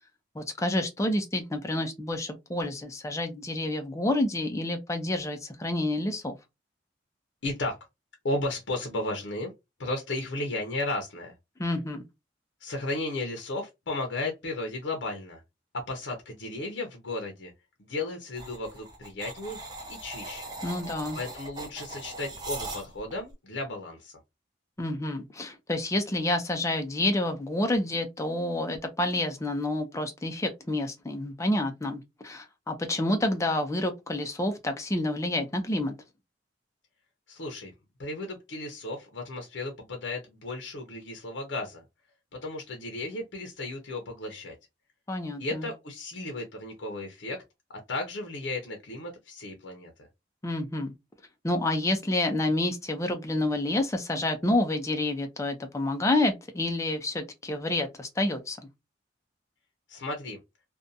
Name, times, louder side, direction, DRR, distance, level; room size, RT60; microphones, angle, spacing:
voice 1, 0.4-6.3 11.6-12.0 20.6-21.2 24.8-35.9 45.1-45.7 50.4-50.9 51.4-58.6, left 1 dB, 15° left, 0.4 m, -29 dB
voice 2, 7.4-7.8 8.2-9.5 9.8-11.3 12.6-15.4 15.7-17.5 17.8-19.6 19.9-20.5 21.1-24.1 37.3-37.7 38.0-41.8 42.3-44.5 45.4-47.4 47.9-49.9 59.9-60.4, left 2 dB, 75° left, 0.6 m, -34 dB
sound 1, 18.3-23.2, right 2 dB, 20° right, 0.7 m, -40 dB
2.5 x 2.2 x 2.6 m
head